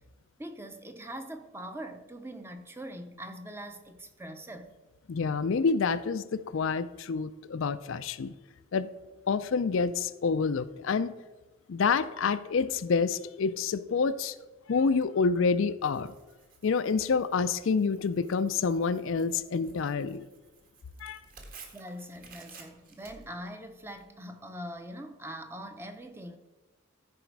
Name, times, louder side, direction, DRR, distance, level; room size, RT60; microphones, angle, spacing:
voice 1, 0.4-4.7 21.7-26.4, right 1 dB, 10° right, 7 dB, 0.6 m, -42 dB
voice 2, 5.1-8.3 8.7-8.9 9.3-11.1 11.7-14.3 14.7-16.1 16.6-20.2 21.0-21.2, left 5 dB, 65° left, 13 dB, 0.4 m, -28 dB
Tearing, 15.8-24.0, right 4 dB, 40° right, 1.5 m, -54 dB
14.5 x 5.0 x 4.6 m, 1.2 s
head